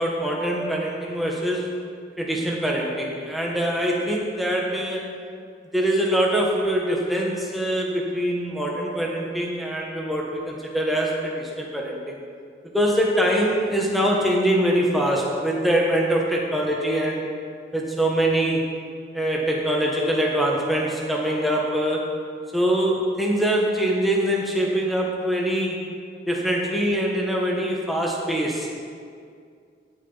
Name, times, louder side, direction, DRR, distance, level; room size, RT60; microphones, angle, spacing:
voice 1, 0.0-1.7 2.2-5.1 5.7-12.2 12.7-17.3 17.7-18.6 19.1-22.0 22.5-25.8 26.3-28.7, right 1 dB, ahead, -3 dB, 1.4 m, -23 dB
17.5 x 6.8 x 4.1 m, 2.2 s
head